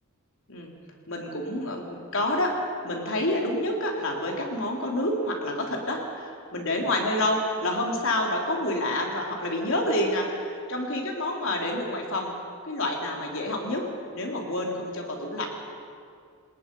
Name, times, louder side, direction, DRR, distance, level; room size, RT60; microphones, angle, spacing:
voice 1, 1.1-2.6 2.8-12.3 12.7-13.9 14.1-15.5, left 1 dB, 65° left, 0 dB, 3.6 m, -28 dB
27.5 x 20.0 x 5.5 m, 2.3 s
head